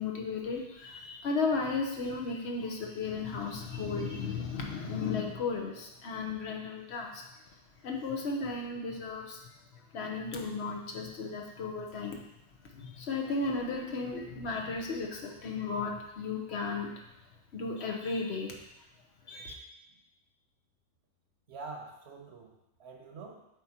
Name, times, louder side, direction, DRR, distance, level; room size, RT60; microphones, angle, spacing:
voice 1, 0.0-7.3 7.8-9.4 9.7-12.2 12.6-17.0 17.5-18.6 19.3-19.5, left 4 dB, 75° left, 1 dB, 1.1 m, -35 dB
voice 2, 21.5-23.5, right 4 dB, 75° right, 2 dB, 1.1 m, -46 dB
7.6 x 4.5 x 2.9 m, 0.89 s
omnidirectional pair, 1.1 m